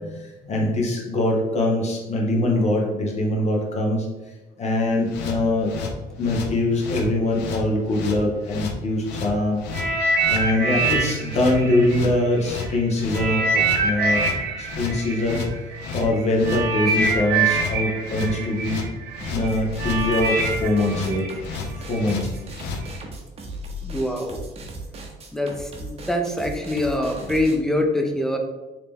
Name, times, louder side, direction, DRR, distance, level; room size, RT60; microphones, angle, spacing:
voice 1, 0.0-4.1 4.6-5.8 6.2-9.6 10.3-14.2 14.6-15.4 15.9-18.8 19.3-21.3 21.8-22.3, left 1 dB, 40° left, -1 dB, 1.0 m, -23 dB
sound 1, 5.0-22.8, left 4 dB, 90° left, 0.6 m, -33 dB
sound 2, 9.7-12.7 13.1-22.1 22.8-23.0, right 3 dB, 75° right, 0.6 m, -25 dB
sound 3, 19.2-27.6, right 1 dB, 35° right, 0.7 m, -36 dB
voice 2, 23.8-24.4 25.3-28.4, left 1 dB, 5° left, 4 dB, 0.5 m, -24 dB
3.2 x 2.9 x 3.5 m, 1.1 s
cardioid pair, 110°, 17 cm